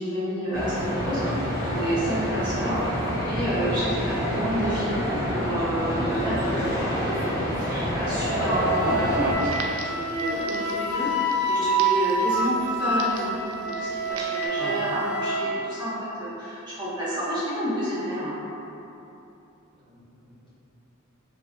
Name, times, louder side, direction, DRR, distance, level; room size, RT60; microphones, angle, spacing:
voice 1, 0.0-2.8 3.3-13.3 13.6-15.9 16.2-18.4, equal, 20° right, -11 dB, 0.6 m, -29 dB
sound 1, 0.5-9.4, equal, 45° left, 1.0 m, -28 dB
voice 2, 6.5-6.8 14.6-14.8 19.9-20.5, left 1 dB, 20° left, -11 dB, 0.8 m, -39 dB
Wind instrument woodwind instrument, 8.4-15.5, right 2 dB, 80° left, 0.4 m, -27 dB
Crackle, 9.4-14.5, right 3 dB, 70° right, 0.4 m, -41 dB
3.1 x 2.5 x 2.4 m, 2.9 s
head